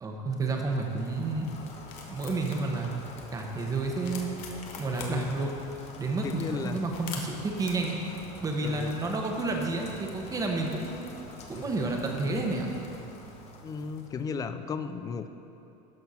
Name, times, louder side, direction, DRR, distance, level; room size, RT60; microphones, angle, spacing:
voice 1, 0.0-1.8 2.1-2.9 3.3-4.3 4.8-5.5 6.0-8.0 8.4-10.9 11.5-12.7, right 3 dB, 20° right, 1 dB, 1.1 m, -30 dB
Rain, 0.6-14.4, left 2 dB, 35° left, 1.0 m, -47 dB
sound 1, 1.1-14.0, left 5 dB, 75° left, 1.2 m, -49 dB
voice 2, 4.9-5.3 6.2-6.8 7.1-7.2 8.6-9.0 13.6-15.3, left 5 dB, 20° left, 10 dB, 0.3 m, -35 dB
12.0 x 4.5 x 5.6 m, 2.8 s
supercardioid pair, 140°, 19 cm